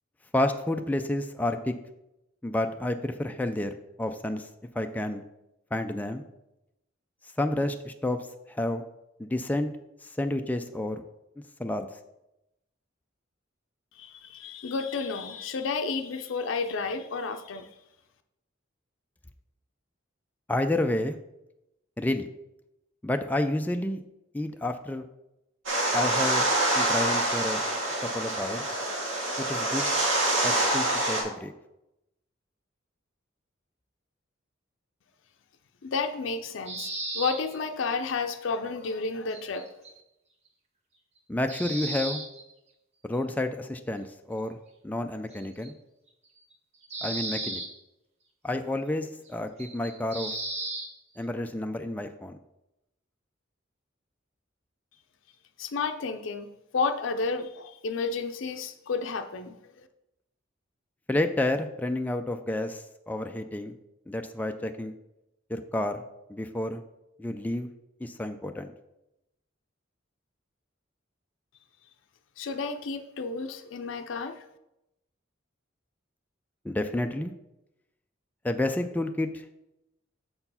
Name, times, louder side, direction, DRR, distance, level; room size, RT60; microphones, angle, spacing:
voice 1, 0.3-1.7 2.4-4.5 4.8-5.2 5.7-6.2 7.4-8.2 8.5-8.8 9.2-9.7 10.0-11.0 11.6-11.9 20.5-21.2 22.0-22.3 23.0-24.0 24.3-25.0 25.9-26.5 26.7-27.6 28.0-28.7 29.4-29.9 30.4-31.5 41.3-42.2 43.0-44.6 44.8-45.7 47.0-47.6 48.4-50.3 51.2-52.4 61.1-63.7 64.1-64.9 65.5-66.0 66.3-66.8 67.2-67.7 68.0-68.7 76.6-77.3 78.4-79.4, left 1 dB, 10° left, 6 dB, 0.3 m, -30 dB
voice 2, 14.0-17.7 35.8-39.7 55.6-59.9 72.4-74.4, left 4 dB, 75° left, 7 dB, 0.5 m, -31 dB
sound 1, 25.7-31.2, right 1 dB, 75° right, 2.1 m, -26 dB
sound 2, 36.7-37.6 39.3-39.9 41.2-41.3 41.5-42.5 43.1-43.2 45.3-45.7 46.5-46.6 46.8-47.7 49.3-49.4 49.6-50.9, right 2 dB, 35° right, 1.2 m, -35 dB
6.8 x 4.5 x 5.6 m, 0.89 s
head